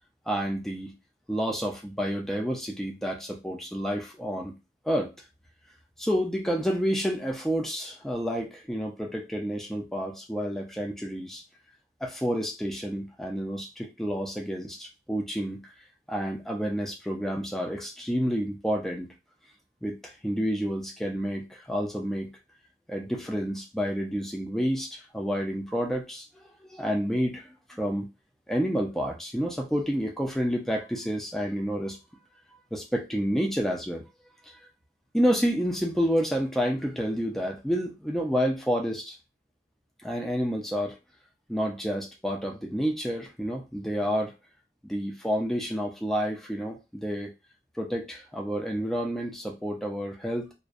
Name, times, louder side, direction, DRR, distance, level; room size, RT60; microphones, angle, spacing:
voice 1, 0.3-0.9 1.3-4.5 4.8-5.1 6.0-11.4 12.0-15.6 16.1-19.1 19.8-22.3 22.9-28.1 28.5-32.0 32.7-34.0 35.1-39.2 40.0-41.0 41.5-44.3 44.8-47.3 47.8-50.5, equal, ahead, 0 dB, 0.4 m, -29 dB
2.5 x 2.1 x 2.4 m, 0.26 s
head